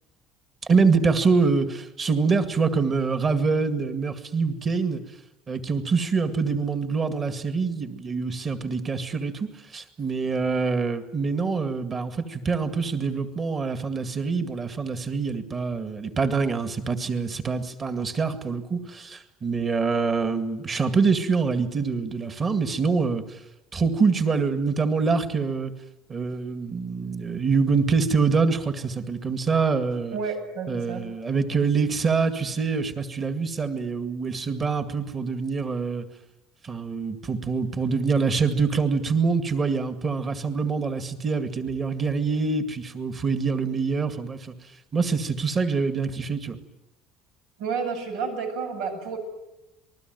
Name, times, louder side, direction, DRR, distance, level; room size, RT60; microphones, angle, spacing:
voice 1, 0.6-5.0 5.5-23.4 23.7-25.7 26.1-30.2 30.7-36.0 36.6-44.5 44.9-46.6, right 4 dB, 20° right, 9 dB, 2.1 m, -25 dB
voice 2, 30.1-31.1 47.6-49.2, right 5 dB, 85° right, 6 dB, 7.9 m, -30 dB
27.0 x 21.0 x 9.4 m, 0.92 s
cardioid pair, 175°, 0 cm